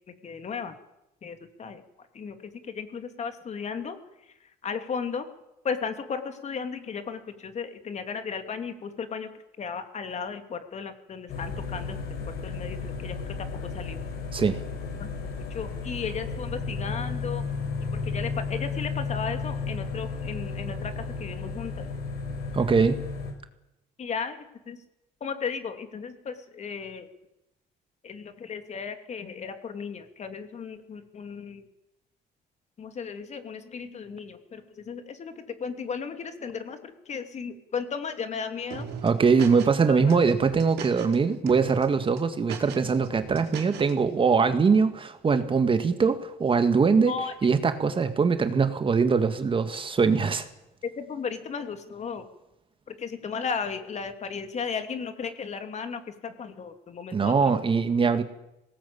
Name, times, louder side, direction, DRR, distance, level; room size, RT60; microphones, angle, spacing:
voice 1, 0.2-0.7 1.2-1.8 2.1-4.0 4.6-5.3 5.6-9.3 9.6-12.0 12.4-13.2 13.7-14.0 15.0-17.5 18.0-21.9 24.0-24.8 25.2-27.1 28.0-31.7 32.8-38.9 39.9-40.2 47.1-47.3 50.8-52.3 52.9-57.7, left 6 dB, 40° left, 8 dB, 2.8 m, -35 dB
sound 1, 11.3-23.3, left 4 dB, 65° left, 6.3 m, -33 dB
voice 2, 22.5-23.0 39.0-47.1 47.4-50.5 57.1-58.2, right 5 dB, 30° right, 9 dB, 1.9 m, -22 dB
sound 2, 38.7-39.8 40.1-41.2 41.5-41.9 42.2-43.9, right 7 dB, 75° right, 4.2 m, -38 dB
21.0 x 18.5 x 8.8 m, 0.91 s
cardioid pair, 110°, 17 cm